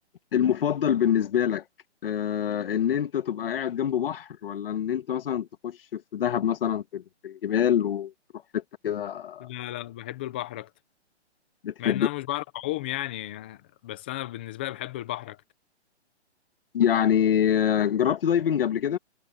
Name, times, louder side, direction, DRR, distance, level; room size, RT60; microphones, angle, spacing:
voice 1, 0.3-1.6 2.0-8.1 8.5-9.5 11.6-12.1 16.7-19.0, left 9 dB, 50° left, 2.0 m, -25 dB
voice 2, 9.4-10.7 11.8-15.4, left 15 dB, 10° left, 0.5 m, -34 dB
hypercardioid pair, 155°, 35 cm